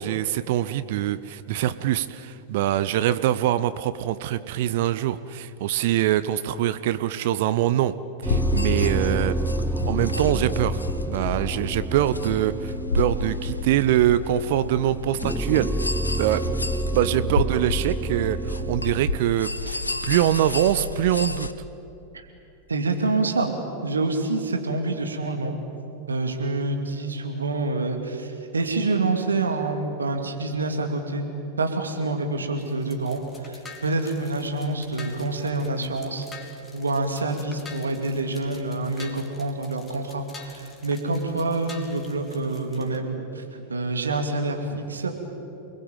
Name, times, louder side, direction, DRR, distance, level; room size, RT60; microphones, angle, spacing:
voice 1, 0.0-7.9 8.2-9.4 9.9-10.8 11.1-15.7 16.2-16.4 16.9-21.5, right 12 dB, 50° right, 14 dB, 0.8 m, -24 dB
sound 1, 8.2-21.5, left 3 dB, 80° left, 1.1 m, -30 dB
sound 2, 8.3-19.2, right 2 dB, 5° right, 0.5 m, -29 dB
voice 2, 22.7-23.5 23.8-25.6 26.1-31.3 31.6-36.3 36.7-45.2, right 2 dB, 75° right, 4 dB, 2.6 m, -27 dB
sound 3, 32.6-43.0, left 4 dB, 20° left, 3.1 m, -47 dB
29.5 x 20.5 x 9.1 m, 2.8 s
figure-of-eight pair, 90°, 0 cm